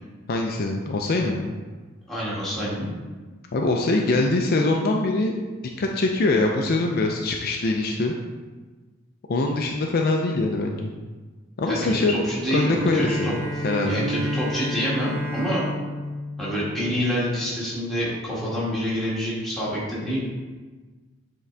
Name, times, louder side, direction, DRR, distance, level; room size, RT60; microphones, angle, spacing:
voice 1, 0.3-1.6 3.5-5.3 5.8-8.1 9.3-10.9 11.6-12.2 12.5-13.4 13.6-14.1, left 2 dB, 50° left, 1 dB, 0.5 m, -23 dB
voice 2, 2.1-2.9 11.7-13.3 13.8-15.6 16.4-20.2, equal, ahead, -8 dB, 1.8 m, -27 dB
Bowed string instrument, 12.6-17.5, equal, 35° right, 1.4 m, -31 dB
8.1 x 3.7 x 3.4 m, 1.3 s
head